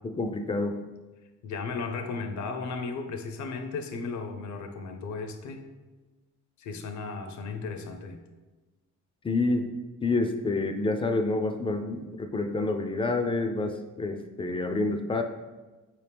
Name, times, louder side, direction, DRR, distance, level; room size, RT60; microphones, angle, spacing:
voice 1, 0.0-0.8 9.2-9.7 10.0-15.2, left 2 dB, 20° left, 6 dB, 0.3 m, -28 dB
voice 2, 1.4-5.6 6.6-8.2, left 4 dB, 70° left, 6 dB, 0.6 m, -35 dB
4.3 x 2.9 x 3.3 m, 1.2 s
cardioid pair, 90°, 30 cm